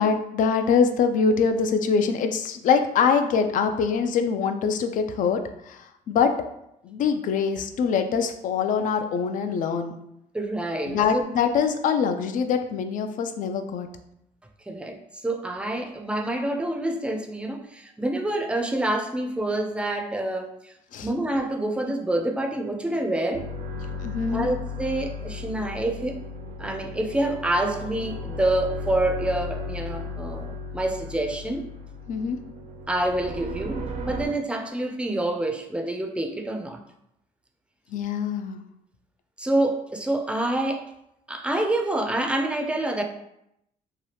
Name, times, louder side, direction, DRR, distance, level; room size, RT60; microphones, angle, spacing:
voice 1, 0.0-6.4 6.8-10.0 10.9-13.9 20.9-21.1 24.0-24.5 32.1-32.4 37.9-38.6, left 6 dB, 60° left, 7 dB, 0.4 m, -24 dB
voice 2, 10.3-11.2 14.7-15.0 15.2-20.7 21.0-23.5 24.3-26.2 26.6-31.7 32.9-36.8 39.4-40.9 41.3-43.0, right 1 dB, 5° right, 4 dB, 0.4 m, -27 dB
sound 1, 23.3-34.3, left 2 dB, 55° right, 0.5 m, -35 dB
2.8 x 2.3 x 3.2 m, 0.80 s
cardioid pair, 80°, 15 cm